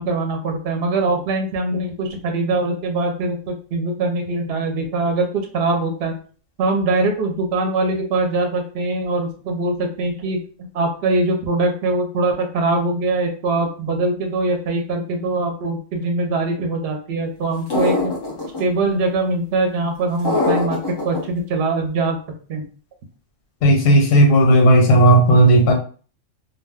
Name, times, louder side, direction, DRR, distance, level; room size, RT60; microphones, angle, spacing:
voice 1, 0.0-6.1 6.6-18.1 18.6-20.8 21.0-22.2 22.5-22.6, right 2 dB, 60° right, 3 dB, 0.8 m, -22 dB
sound 1, 17.7-18.6 20.2-21.2, left 2 dB, 30° left, 0.4 m, -21 dB
voice 2, 23.6-25.7, right 1 dB, 75° left, 1 dB, 1.1 m, -13 dB
2.4 x 2.2 x 3.4 m, 0.40 s
omnidirectional pair, 1.3 m